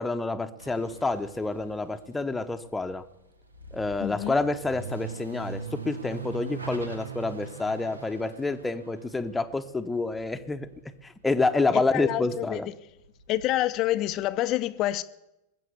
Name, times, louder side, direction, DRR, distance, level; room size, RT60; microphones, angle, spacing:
voice 1, 0.0-3.0 3.7-10.7 11.0-12.7, left 3 dB, 10° left, 0.8 m, -28 dB
sound 1, 0.6-11.6 11.9-14.2, right 5 dB, 80° right, 1.2 m, -42 dB
voice 2, 4.0-4.3 11.7-12.6 13.3-15.0, left 15 dB, 35° left, 0.6 m, -27 dB
20.0 x 7.7 x 8.1 m
figure-of-eight pair, 90°, 0 cm